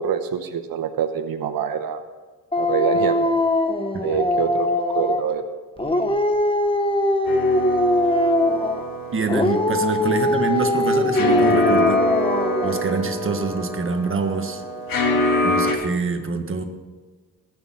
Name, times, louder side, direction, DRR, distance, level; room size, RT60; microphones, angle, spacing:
voice 1, 0.0-2.0 2.5-3.3 4.0-5.4 5.8-6.2 9.8-10.0, right 7 dB, 90° right, 7 dB, 0.9 m, -26 dB
Dog, 2.5-5.3 5.8-8.9 9.3-12.8, left 1 dB, 15° left, 1.0 m, -21 dB
sound 1, 7.2-15.8, left 1 dB, 75° left, 2.2 m, -25 dB
voice 2, 9.1-12.0 12.6-14.6 15.4-16.6, right 4 dB, 40° right, 5 dB, 1.6 m, -25 dB
19.5 x 7.1 x 5.8 m, 1.4 s
cardioid pair, 105°, 34 cm